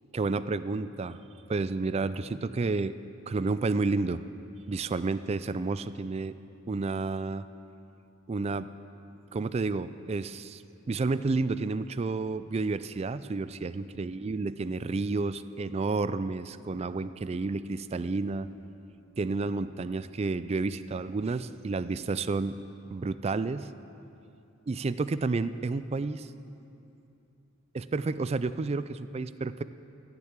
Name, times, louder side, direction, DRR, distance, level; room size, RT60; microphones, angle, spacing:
voice 1, 0.1-1.2 1.5-2.9 3.3-4.2 4.7-6.3 6.7-7.5 8.3-8.7 9.3-10.6 10.9-18.5 19.2-22.6 22.9-23.7 24.7-26.3 27.7-29.6, right 3 dB, 30° right, 14 dB, 0.3 m, -30 dB
14.5 x 6.8 x 8.8 m, 2.8 s
head